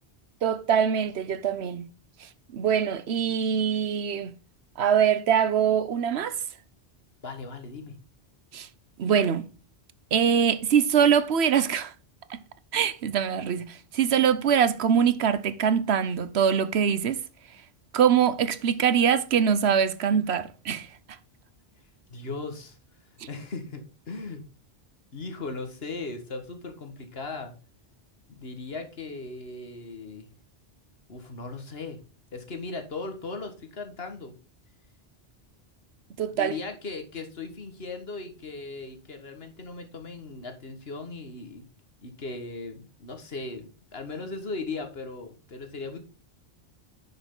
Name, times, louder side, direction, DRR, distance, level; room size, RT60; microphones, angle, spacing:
voice 1, 0.4-1.9 2.2-4.3 4.8-6.4 8.5-8.7 9.0-9.4 10.1-11.9 12.3-12.4 12.7-17.2 17.9-20.9 36.2-36.6, right 8 dB, 90° right, 1.1 m, -23 dB
voice 2, 7.2-8.0 22.1-22.8 23.3-24.4 25.1-27.5 28.3-30.3 31.1-32.0 32.3-34.4 36.3-41.6 42.0-46.0, left 3 dB, 70° left, 1.9 m, -38 dB
10.5 x 6.3 x 3.8 m
omnidirectional pair, 1.1 m